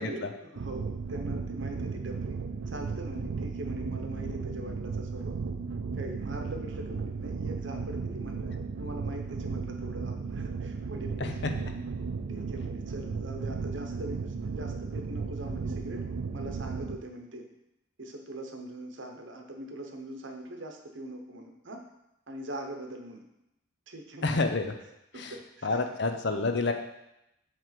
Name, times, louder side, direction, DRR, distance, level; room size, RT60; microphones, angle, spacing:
voice 1, 0.0-2.4 2.7-5.4 5.9-11.8 12.3-16.0 16.3-17.5 18.0-21.8 22.3-23.2 23.9-24.3 25.1-25.9 26.3-26.7, right 1 dB, 65° right, 3 dB, 1.0 m, -42 dB
sound 1, 0.6-17.0, right 4 dB, 80° right, 0.4 m, -35 dB
voice 2, 11.2-11.5 24.2-24.7 25.2-25.3 25.6-26.7, left 3 dB, 55° left, 7 dB, 0.6 m, -28 dB
7.7 x 3.3 x 5.9 m, 0.86 s
head